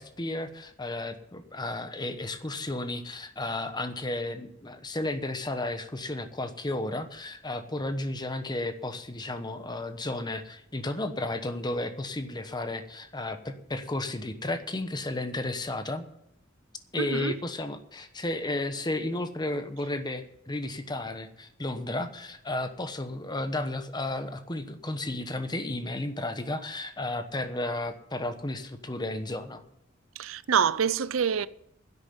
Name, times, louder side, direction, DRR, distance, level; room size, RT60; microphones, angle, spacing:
voice 1, 0.0-16.0 16.9-29.6, left 2 dB, 20° left, 1.0 m, -33 dB
voice 2, 17.0-17.4 30.2-31.5, right 7 dB, 75° right, 0.5 m, -26 dB
10.5 x 8.2 x 9.7 m
head